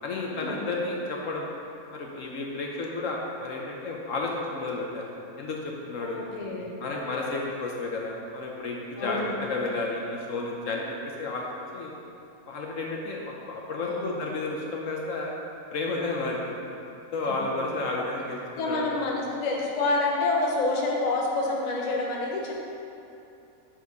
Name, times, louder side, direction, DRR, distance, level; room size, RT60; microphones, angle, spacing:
voice 1, 0.0-1.5 1.9-5.0 5.4-6.2 6.8-11.5 11.7-11.9 12.5-15.3 15.7-16.7 17.1-18.9, left 3 dB, 65° left, -1 dB, 1.0 m, -32 dB
voice 2, 6.0-6.7 9.0-9.4 13.8-14.2 17.3-17.7 18.6-22.5, left 2 dB, 35° left, -2 dB, 0.8 m, -28 dB
7.1 x 4.5 x 5.2 m, 2.8 s
omnidirectional pair, 1.6 m